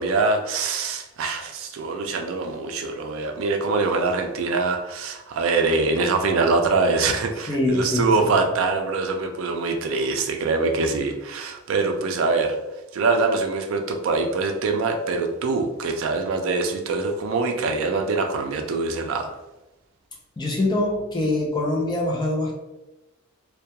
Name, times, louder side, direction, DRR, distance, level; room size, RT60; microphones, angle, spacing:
voice 1, 0.0-12.6 12.9-19.3, right 3 dB, 70° right, 5 dB, 0.3 m, -24 dB
voice 2, 7.5-8.3 20.4-22.5, left 1 dB, 20° left, -1 dB, 0.4 m, -24 dB
2.2 x 2.2 x 2.8 m, 1.0 s
head